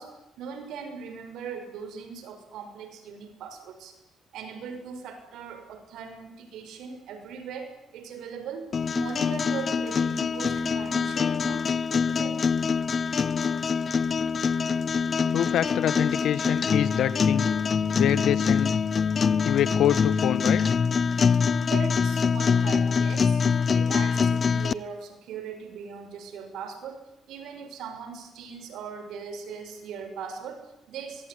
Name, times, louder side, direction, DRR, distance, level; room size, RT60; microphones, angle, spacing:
voice 1, 0.0-4.0 4.3-8.7 8.9-12.5 21.6-23.4 23.7-31.3, right 6 dB, 85° right, 8 dB, 6.3 m, -39 dB
sound 1, 8.7-24.7, left 6 dB, 45° left, 0.9 m, -24 dB
voice 2, 15.3-17.5 17.9-18.7 19.4-20.7, left 10 dB, 75° left, 14 dB, 1.6 m, -26 dB
23.5 x 23.0 x 9.7 m, 0.84 s
cardioid pair, 90°, 0 cm